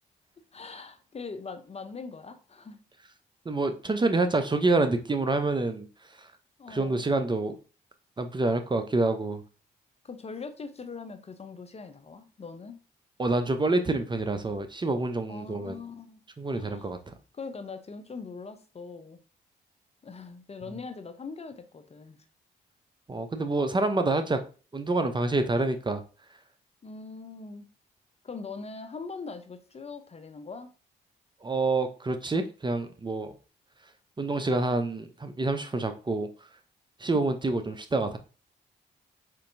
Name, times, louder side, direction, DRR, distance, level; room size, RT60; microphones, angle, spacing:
voice 1, 0.5-2.8 6.6-7.0 10.0-12.8 15.3-16.9 17.3-19.2 20.0-22.2 26.8-27.7 28.2-30.7 37.1-37.3, left 4 dB, 35° left, 0.6 m, -41 dB
voice 2, 3.5-5.9 6.7-7.6 8.2-9.4 13.2-15.8 16.4-17.0 23.1-24.4 24.7-26.0 31.4-33.3 34.2-36.3 37.0-38.2, right 2 dB, 25° right, 0.5 m, -27 dB
4.3 x 2.7 x 2.6 m
supercardioid pair, 55°, 19 cm